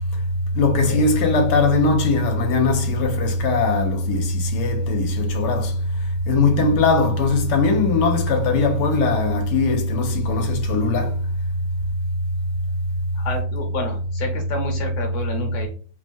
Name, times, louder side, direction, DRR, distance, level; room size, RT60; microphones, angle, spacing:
voice 1, 0.5-5.7 6.3-11.1, left 3 dB, 75° left, 1.2 m, -19 dB
voice 2, 13.1-15.7, left 2 dB, 55° left, 0.9 m, -29 dB
3.2 x 2.1 x 2.5 m
omnidirectional pair, 1.9 m